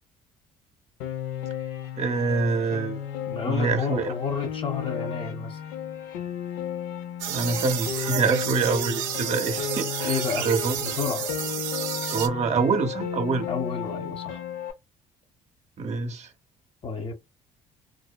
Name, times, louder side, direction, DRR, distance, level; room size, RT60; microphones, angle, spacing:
Piano, 1.0-14.7, left 9 dB, 85° left, 0.4 m, -34 dB
voice 1, 2.0-3.0 3.5-4.1 7.3-10.8 12.1-13.5 15.8-16.3, right 4 dB, 50° right, 0.7 m, -26 dB
voice 2, 3.3-5.6 10.0-10.5 10.8-11.3 13.5-14.4 16.8-17.1, left 5 dB, 35° left, 0.7 m, -30 dB
sound 1, 7.2-12.3, right 10 dB, 90° right, 0.4 m, -31 dB
2.6 x 2.1 x 2.2 m
supercardioid pair, 70°, 15 cm